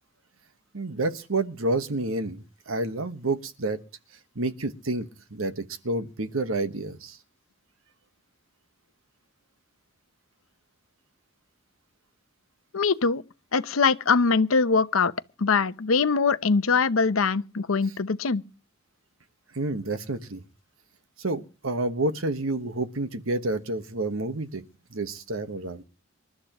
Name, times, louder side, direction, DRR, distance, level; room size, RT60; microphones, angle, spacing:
voice 1, 0.7-3.8 4.3-7.2 19.5-20.4 21.2-24.6 24.9-25.8, right 2 dB, 75° right, 1.3 m, -29 dB
voice 2, 12.7-13.2 13.5-15.1 15.4-18.4, left 4 dB, 80° left, 0.8 m, -22 dB
27.5 x 12.5 x 3.0 m
head